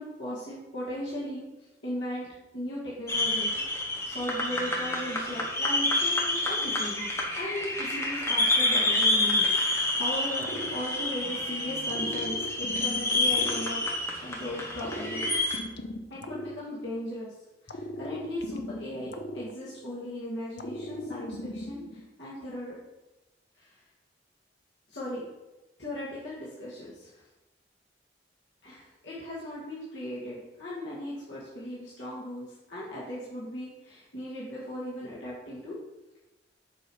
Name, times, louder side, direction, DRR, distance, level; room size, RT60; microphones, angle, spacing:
voice 1, 0.0-2.3 2.5-3.6 4.1-7.1 7.4-9.6 10.0-15.3 16.1-17.3 17.6-22.8 23.6-23.8 24.9-25.3 25.8-27.2 28.6-35.8, left 1 dB, 80° left, -8 dB, 2.0 m, -37 dB
sound 1, 3.1-15.6, left 2 dB, 15° left, 1.2 m, -28 dB
sound 2, 10.4-11.4 11.9-14.3 14.8-17.2 17.7-20.1 20.6-22.1, left 1 dB, 65° left, 0.7 m, -39 dB
7.0 x 6.0 x 4.6 m, 1.0 s
head